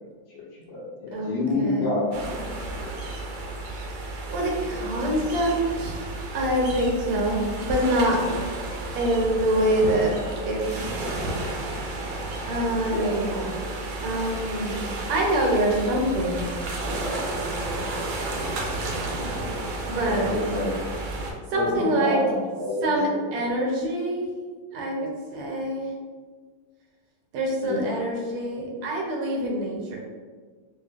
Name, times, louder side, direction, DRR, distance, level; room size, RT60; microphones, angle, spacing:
voice 1, 0.3-2.1 12.9-13.1 20.1-20.7 21.5-23.3 27.6-28.0, left 2 dB, 60° left, -10 dB, 1.5 m, -28 dB
voice 2, 1.1-1.9 3.9-6.0 6.3-8.2 8.9-10.2 10.4-10.9 12.5-13.6 14.0-14.8 15.1-16.5 19.9-20.3 21.5-22.2 22.8-24.3 24.7-25.9 27.3-30.0, right 1 dB, 90° right, -1 dB, 1.7 m, -25 dB
sound 1, 2.1-21.3, right 2 dB, 75° right, 1.2 m, -32 dB
4.8 x 2.4 x 2.4 m, 1.5 s
omnidirectional pair, 2.4 m